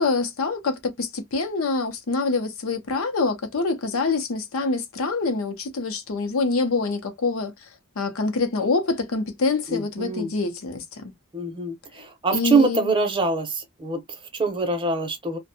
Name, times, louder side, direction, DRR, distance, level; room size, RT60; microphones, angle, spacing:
voice 1, 0.0-7.7 8.0-11.1 12.3-13.0, left 3 dB, 70° left, 0.6 m, -25 dB
voice 2, 9.7-10.3 11.3-15.4, right 3 dB, 25° right, 0.7 m, -24 dB
2.5 x 2.1 x 2.6 m
head